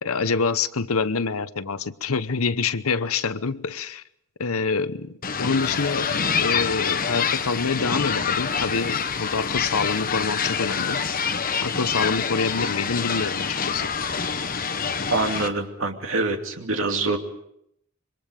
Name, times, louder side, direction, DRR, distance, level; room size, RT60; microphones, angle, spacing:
voice 1, 0.0-4.0 4.4-11.1 11.6-13.9, left 4 dB, 90° left, 0.9 m, -26 dB
sound 1, 5.2-15.5, left 6 dB, 40° left, 1.2 m, -26 dB
voice 2, 15.1-17.2, right 3 dB, 65° right, 2.5 m, -25 dB
26.5 x 24.0 x 5.2 m
head